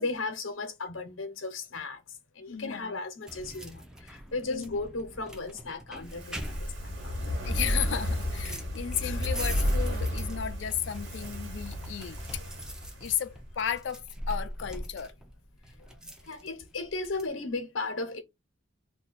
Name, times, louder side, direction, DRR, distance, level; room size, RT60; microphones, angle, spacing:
voice 1, 0.0-2.0 2.3-7.4 12.0-12.1 12.3-12.5 16.0-18.2, left 3 dB, 85° left, 0.9 m, -36 dB
voice 2, 2.5-3.0 4.5-4.8 7.4-12.2 13.0-15.1, left 9 dB, 65° left, 0.4 m, -34 dB
sound 1, 3.3-17.3, equal, 5° right, 0.5 m, -43 dB
Fire, 6.0-13.4 13.7-13.8, equal, 65° right, 1.2 m, -32 dB
2.6 x 2.3 x 4.0 m
head